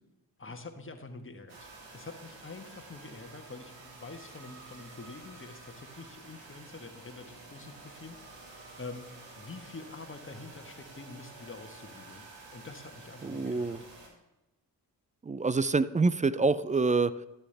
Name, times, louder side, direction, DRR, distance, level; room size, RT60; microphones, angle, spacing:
voice 1, 0.4-1.7 1.9-9.1 9.4-12.3 12.5-13.8, left 3 dB, 30° left, 5 dB, 1.4 m, -46 dB
sound 1, 1.5-14.1, right 3 dB, 90° right, 2.0 m, -50 dB
voice 2, 13.2-13.8 15.2-17.1, right 3 dB, 20° right, 17 dB, 0.4 m, -26 dB
12.5 x 7.1 x 3.4 m, 1.0 s
supercardioid pair, 50°, 43 cm